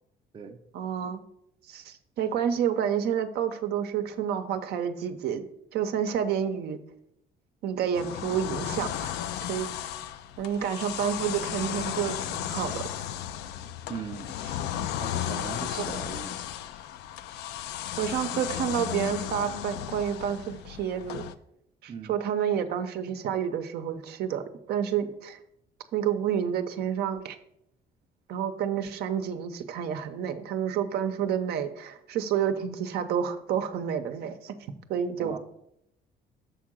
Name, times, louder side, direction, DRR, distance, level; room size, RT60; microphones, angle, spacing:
voice 1, 0.7-1.2 1.7-5.5 5.7-6.8 7.6-9.2 9.5-9.7 10.4-12.9 15.8-15.9 18.0-21.2 21.8-25.4 25.9-27.4 28.3-34.6 34.9-35.4, right 8 dB, 70° right, 8 dB, 0.7 m, -29 dB
sound 1, 7.9-21.3, left 11 dB, 85° left, 0.4 m, -34 dB
voice 2, 13.9-14.3 15.0-16.3 21.9-22.1 35.2-35.4, right 6 dB, 30° right, 6 dB, 0.6 m, -39 dB
6.9 x 3.7 x 6.1 m, 0.76 s
cardioid pair, 110°, 17 cm